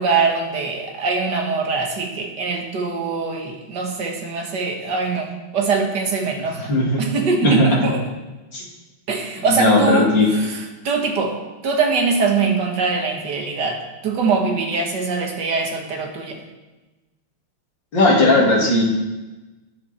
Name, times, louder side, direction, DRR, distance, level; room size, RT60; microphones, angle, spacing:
voice 1, 0.0-6.7 7.0-8.0 9.1-11.4 11.6-16.4, right 4 dB, 55° right, 2 dB, 2.1 m, -22 dB
voice 2, 6.6-7.0 7.4-7.7 8.5-8.6 9.4-10.3 17.9-18.8, left 1 dB, 60° left, -3 dB, 3.3 m, -17 dB
13.0 x 10.5 x 4.4 m, 1.1 s
omnidirectional pair, 2.3 m